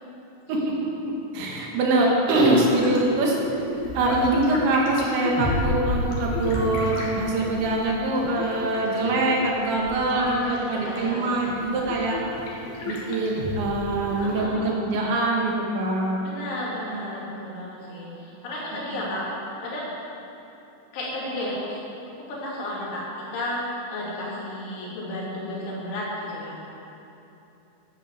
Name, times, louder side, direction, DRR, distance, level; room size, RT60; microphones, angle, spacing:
voice 1, 1.3-3.4 3.9-12.2 12.9-16.2 18.9-19.0, right 2 dB, 75° right, -2 dB, 4.1 m, -23 dB
sound 1, 2.3-14.5, left 2 dB, 60° left, 3.5 m, -32 dB
voice 2, 10.1-11.2 14.2-14.7 16.2-19.3 19.6-19.9 20.9-21.8 22.3-26.6, left 1 dB, 80° left, -6 dB, 5.4 m, -32 dB
11.5 x 10.5 x 7.3 m, 3.0 s
omnidirectional pair, 5.4 m